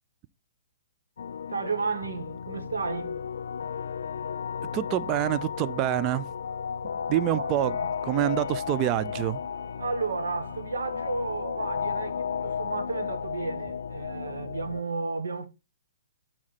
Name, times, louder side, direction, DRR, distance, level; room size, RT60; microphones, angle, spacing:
sound 1, 1.2-14.8, left 7 dB, 70° left, 0.3 m, -34 dB
voice 1, 1.5-3.2 7.3-7.9 9.8-15.5, right 4 dB, 75° right, 1.3 m, -33 dB
voice 2, 4.7-6.3 6.8-7.8 8.0-9.4, right 13 dB, 30° right, 0.4 m, -26 dB
8.5 x 4.3 x 4.1 m
figure-of-eight pair, 125°, 0 cm